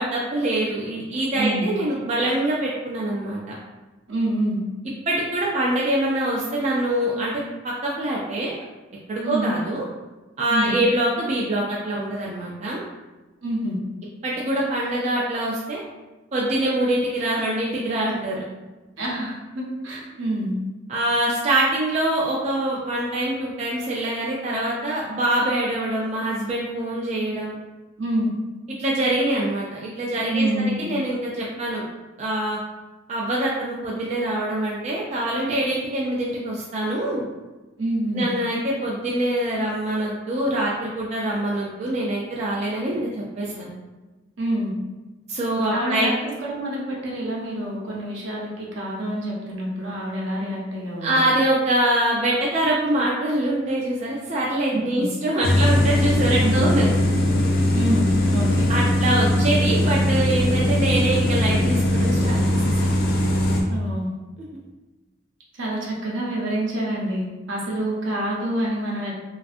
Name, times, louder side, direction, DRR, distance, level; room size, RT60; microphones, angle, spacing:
voice 1, 0.0-3.4 5.1-8.5 9.1-9.8 10.4-12.8 14.2-15.8 16.3-18.4 20.9-27.6 28.8-31.8 32.2-32.6 33.1-37.3 38.1-43.0 43.4-43.7 45.3-46.1 51.0-56.9 58.7-62.6, right 1 dB, 35° right, -4 dB, 0.3 m, -24 dB
voice 2, 1.3-1.6 4.1-4.6 9.2-9.5 10.5-10.7 13.4-13.8 19.0-20.5 28.0-28.3 30.3-30.8 37.8-38.3 44.4-44.7 45.7-51.2 54.7-55.1 56.4-56.8 57.7-58.7 63.7-64.1 65.6-69.1, right 1 dB, 75° right, -3 dB, 0.7 m, -27 dB
sound 1, 55.4-63.6, left 1 dB, 50° left, 0.4 m, -20 dB
2.5 x 2.3 x 2.4 m, 1.1 s
head